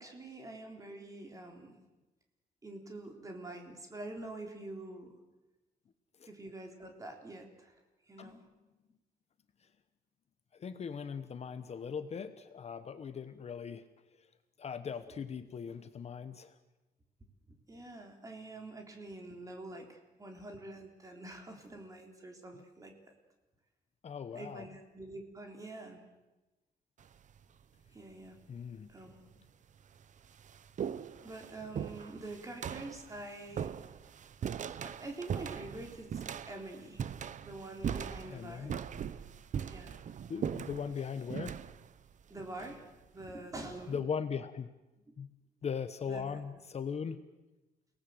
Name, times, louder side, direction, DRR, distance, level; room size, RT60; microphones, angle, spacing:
voice 1, 0.0-1.8 2.6-5.1 6.3-7.8 8.1-8.5 17.5-22.9 24.3-26.0 27.9-28.4 28.9-29.3 30.9-33.9 34.8-37.0 37.4-39.1 39.7-40.0 42.3-42.9 43.1-44.0 46.0-46.2, right 2 dB, 20° right, 3 dB, 3.8 m, -46 dB
voice 2, 10.5-13.9 14.6-16.6 22.5-22.6 24.0-24.7 28.5-28.9 38.3-38.8 40.3-41.6 43.9-44.7 45.2-45.3 45.6-47.2, left 6 dB, 40° left, 10 dB, 1.1 m, -39 dB
sound 1, 27.0-27.4 28.4-28.5 29.3-29.4 29.8-43.3, right 8 dB, 50° right, 0.8 m, -40 dB
29.5 x 18.5 x 8.0 m, 1.1 s
wide cardioid pair, 180°, 16 cm